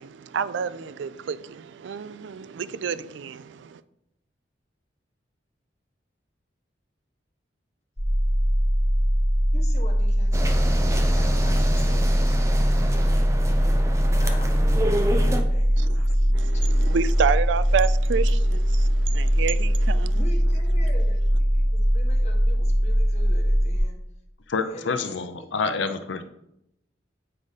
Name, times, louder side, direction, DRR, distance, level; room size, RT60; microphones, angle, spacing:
voice 1, 0.0-3.8 15.8-20.2, right 6 dB, 75° right, 0.4 m, -29 dB
sound 1, 8.0-23.8, equal, 10° left, 2.2 m, -21 dB
voice 2, 9.5-12.6 14.0-17.0 20.1-24.0 24.6-25.1 25.4-25.6, left 1 dB, 35° left, 1.3 m, -44 dB
sound 2, 10.3-15.4, right 1 dB, 15° right, 0.6 m, -29 dB
voice 3, 24.5-26.2, left 4 dB, 80° left, 0.6 m, -27 dB
8.8 x 4.9 x 4.1 m
head